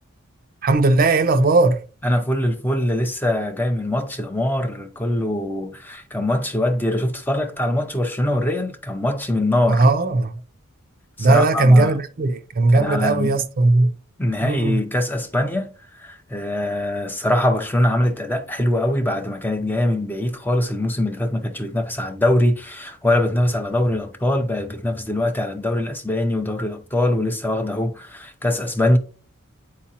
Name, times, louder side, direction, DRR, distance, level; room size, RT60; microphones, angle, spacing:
voice 1, 0.6-1.8 9.7-10.3 11.2-13.9 14.4-14.8, right 2 dB, 40° right, 0.5 m, -17 dB
voice 2, 2.0-9.9 11.2-12.0 12.7-13.4 14.2-29.0, left 1 dB, 10° left, 0.5 m, -22 dB
8.4 x 4.5 x 2.8 m
head